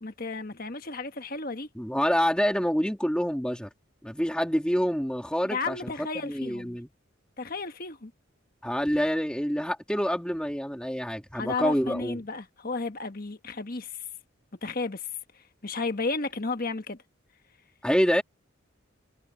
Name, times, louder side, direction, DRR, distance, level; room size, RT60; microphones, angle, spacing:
voice 1, 0.0-1.7 5.4-6.8 7.4-8.1 11.3-14.0 14.6-15.1 15.3-17.0, left 3 dB, 45° left, 1.4 m, -33 dB
voice 2, 1.7-3.7 4.0-6.9 8.6-12.2 17.8-18.2, equal, 5° left, 2.8 m, -27 dB
head